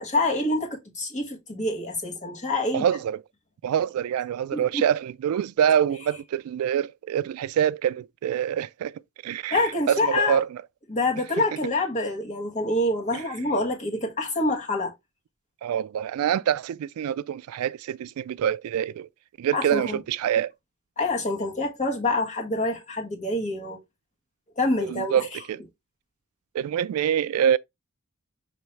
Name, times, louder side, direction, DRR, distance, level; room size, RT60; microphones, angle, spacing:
voice 1, 0.0-2.9 4.5-4.8 9.5-10.4 10.9-14.9 19.5-20.0 21.0-23.8 24.6-25.4, left 2 dB, 35° left, 1.4 m, -26 dB
voice 2, 2.7-3.2 3.6-9.6 9.9-10.5 13.1-13.2 15.6-19.1 19.4-20.5 24.8-25.2 25.5-25.6 26.5-27.6, right 9 dB, 80° right, 0.3 m, -25 dB
5.8 x 2.9 x 3.1 m
head